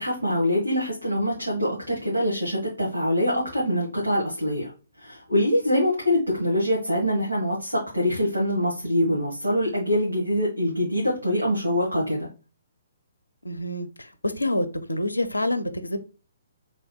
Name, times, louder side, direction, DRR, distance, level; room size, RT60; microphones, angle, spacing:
voice 1, 0.0-4.7 5.0-12.3, left 1 dB, 90° right, 1.4 m, -24 dB
voice 2, 13.4-16.0, left 1 dB, 80° left, 0.6 m, -27 dB
3.3 x 2.3 x 4.2 m
figure-of-eight pair, 130°, 0 cm